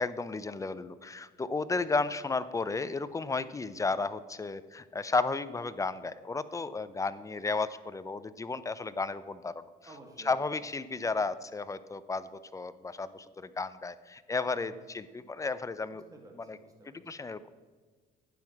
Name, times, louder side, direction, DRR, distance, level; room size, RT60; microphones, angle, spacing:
voice 1, 0.0-9.5 10.3-16.0 16.5-16.6 17.1-17.5, left 3 dB, 20° left, 14 dB, 0.6 m, -33 dB
voice 2, 9.9-10.7 14.5-14.9 15.9-17.0, right 2 dB, 20° right, 0 dB, 2.5 m, -53 dB
12.0 x 9.7 x 4.7 m, 1.5 s
cardioid pair, 110°, 17 cm